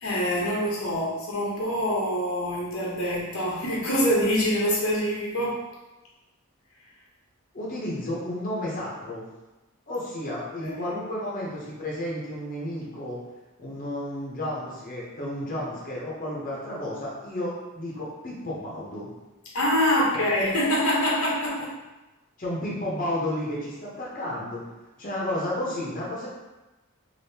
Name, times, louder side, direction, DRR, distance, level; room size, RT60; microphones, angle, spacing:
voice 1, 0.0-5.6 10.6-10.8 19.5-21.8, equal, 75° left, -4 dB, 0.8 m, -25 dB
voice 2, 7.5-9.3 9.9-13.2 13.6-19.1 20.1-20.3 22.4-24.6 25.0-26.3, left 1 dB, 40° left, -6 dB, 0.8 m, -32 dB
3.4 x 2.6 x 2.8 m, 1.1 s
head